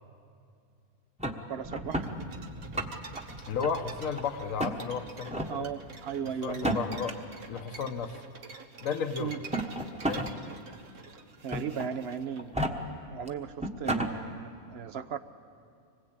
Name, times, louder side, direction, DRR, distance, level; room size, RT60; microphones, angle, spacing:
sound 1, 1.2-2.1 2.6-3.2 3.6-4.2 4.6-4.8 5.3-5.5 6.5-7.1 8.2-8.3 9.3-10.3 10.7-10.8 11.5-11.9 12.4-12.7 13.3-13.4 13.6-14.1, right 1 dB, 5° right, 1.2 m, -31 dB
voice 1, 1.5-2.2 5.5-6.8 9.2-9.4 11.4-12.5 13.1-15.2, right 7 dB, 50° right, 10 dB, 1.0 m, -36 dB
sound 2, 1.6-6.8 7.4-8.2, equal, 25° right, 1.7 m, -47 dB
sound 3, 1.9-12.4, right 4 dB, 70° right, 1.8 m, -47 dB
voice 2, 3.4-5.7 6.4-7.2 7.5-8.2 8.8-9.4 10.0-10.3, left 6 dB, 65° left, 8 dB, 1.5 m, -33 dB
25.5 x 20.5 x 8.7 m, 2.4 s
omnidirectional pair, 1.5 m